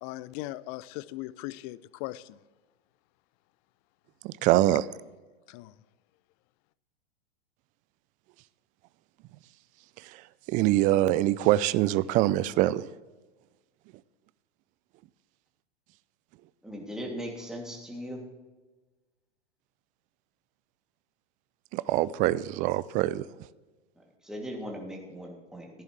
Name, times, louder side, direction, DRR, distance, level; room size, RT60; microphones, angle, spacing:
voice 1, 0.0-2.4 5.5-5.7, left 17 dB, 35° left, 0.4 m, -39 dB
voice 2, 4.2-4.9 10.0-12.9 21.7-23.3, right 15 dB, 25° right, 0.3 m, -24 dB
voice 3, 16.6-18.2 24.0-25.7, equal, ahead, 2.9 m, -39 dB
15.0 x 10.5 x 3.4 m
hypercardioid pair, 105°, 31 cm